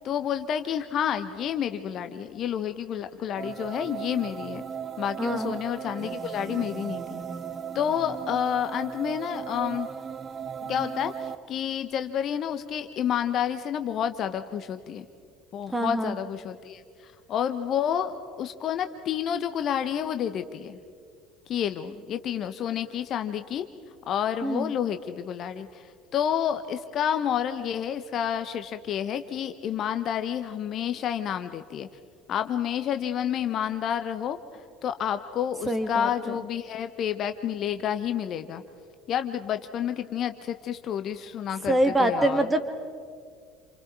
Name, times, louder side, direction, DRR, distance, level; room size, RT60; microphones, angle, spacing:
voice 1, 0.0-4.6 5.0-7.2 7.7-9.9 10.7-15.0 15.5-16.8 17.3-20.8 21.5-23.7 24.1-25.8 26.1-31.9 32.3-34.4 34.8-38.6 39.1-42.5, left 9 dB, 40° left, 9 dB, 1.0 m, -29 dB
sound 1, 3.4-11.4, right 7 dB, 30° right, 0.7 m, -37 dB
voice 2, 5.2-5.5 15.7-16.1 24.4-24.7 35.7-36.1 41.7-42.6, right 1 dB, 10° right, 8 dB, 2.2 m, -24 dB
28.5 x 28.0 x 4.7 m, 2.1 s
figure-of-eight pair, 65°, 0 cm